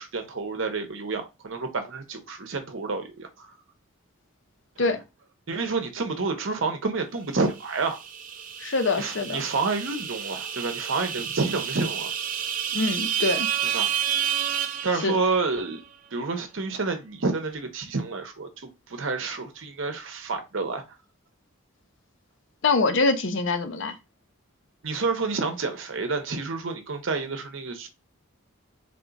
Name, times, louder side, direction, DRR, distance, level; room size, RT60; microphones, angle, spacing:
voice 1, 0.0-3.5 4.8-5.0 5.5-8.0 9.0-12.1 13.7-13.9 14.8-15.8 16.1-18.5 18.9-20.8 24.8-27.9, right 4 dB, 65° right, 0.8 m, -29 dB
sound 1, 7.6-15.6, right 9 dB, 40° right, 0.5 m, -30 dB
voice 2, 8.6-9.4 12.7-13.5 15.0-15.2 22.6-24.0, left 3 dB, 60° left, 0.6 m, -24 dB
3.6 x 2.4 x 3.9 m
head